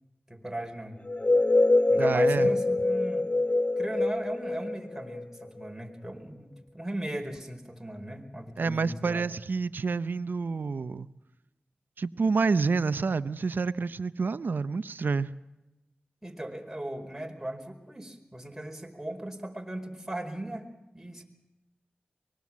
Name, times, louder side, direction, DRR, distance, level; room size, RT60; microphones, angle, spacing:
voice 1, 0.3-1.0 1.9-3.3 3.8-9.3 16.2-20.7 20.9-21.2, right 1 dB, 10° right, 4.8 m, -37 dB
sound 1, 1.1-5.7, left 2 dB, 35° left, 0.8 m, -24 dB
voice 2, 2.0-2.5 8.6-11.1 12.0-15.3, right 4 dB, 80° right, 0.7 m, -28 dB
24.0 x 21.0 x 7.4 m
cardioid pair, 45°, 3 cm